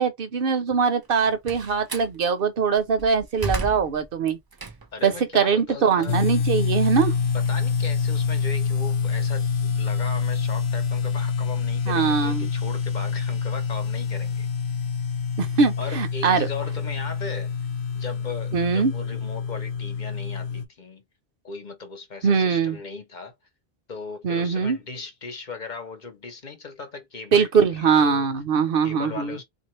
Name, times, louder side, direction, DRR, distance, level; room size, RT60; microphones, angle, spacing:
voice 1, 0.0-4.4 5.0-7.1 11.9-12.5 15.4-16.5 18.5-18.9 22.2-22.8 24.2-24.8 27.3-29.4, right 5 dB, 65° right, 0.9 m, -22 dB
Slam, 1.0-2.1 2.7-5.1 5.5-7.9, right 4 dB, 30° right, 0.5 m, -35 dB
voice 2, 4.9-6.2 7.3-14.5 15.8-17.5 17.9-21.0 21.4-23.3 23.9-28.3 28.8-29.4, left 4 dB, 50° left, 0.9 m, -37 dB
sound 1, 6.1-20.7, left 6 dB, 85° left, 0.9 m, -26 dB
3.6 x 2.6 x 3.1 m
omnidirectional pair, 1.0 m